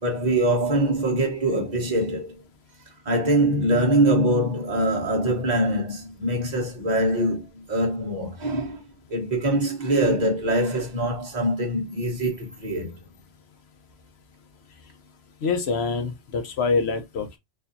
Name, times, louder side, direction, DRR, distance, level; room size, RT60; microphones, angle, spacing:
voice 1, 0.0-2.3 3.0-8.8 9.1-12.9, right 1 dB, 35° right, 1.3 m, -23 dB
voice 2, 15.4-17.4, left 4 dB, 60° left, 0.9 m, -25 dB
4.2 x 2.7 x 2.5 m
omnidirectional pair, 1.3 m